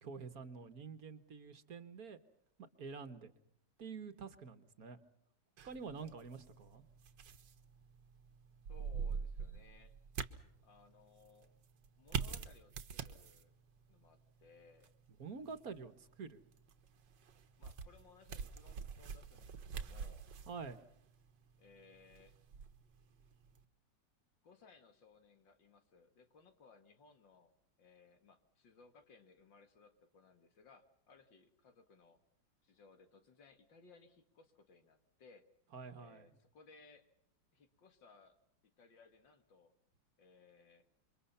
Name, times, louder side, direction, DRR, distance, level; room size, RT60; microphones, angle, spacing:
voice 1, 0.0-2.2 2.6-3.3 3.8-5.0 5.6-6.8 15.2-16.4 20.5-20.8 35.7-36.3, right 5 dB, 55° right, 10 dB, 1.7 m, -48 dB
sound 1, 5.6-23.6, right 6 dB, 75° right, 1.8 m, -47 dB
voice 2, 8.7-10.0 10.6-11.5 12.0-13.5 13.9-14.9 17.6-20.2 21.6-22.4 24.4-27.5 27.8-32.2 32.6-35.5 36.0-37.1 37.5-38.4 38.6-39.7 40.2-40.8, left 4 dB, 80° left, 8 dB, 2.7 m, -63 dB
28.0 x 24.0 x 5.6 m, 0.72 s
omnidirectional pair, 2.0 m